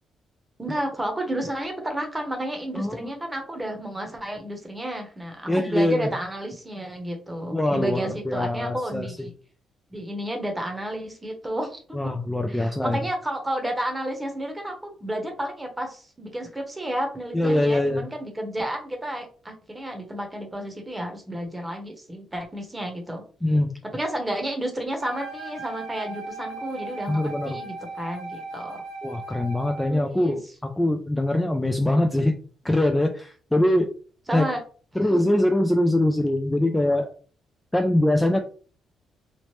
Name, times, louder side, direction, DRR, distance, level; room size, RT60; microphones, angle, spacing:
voice 1, 0.6-9.3 9.9-12.1 12.5-23.2 23.9-28.8 29.9-30.4 34.3-34.6 35.0-35.2, right 1 dB, 15° right, 3 dB, 0.9 m, -31 dB
voice 2, 2.7-3.1 5.5-6.1 7.5-9.1 11.9-13.0 17.3-18.0 23.4-23.7 27.1-27.6 29.0-30.4 30.8-32.4 32.6-33.9 34.3-34.4 35.0-37.1 37.7-38.4, left 1 dB, 10° left, 4 dB, 0.3 m, -23 dB
Wind instrument woodwind instrument, 25.0-30.0, right 2 dB, 80° right, 0.8 m, -37 dB
3.1 x 2.0 x 2.9 m, 0.41 s
cardioid pair, 90°, 0 cm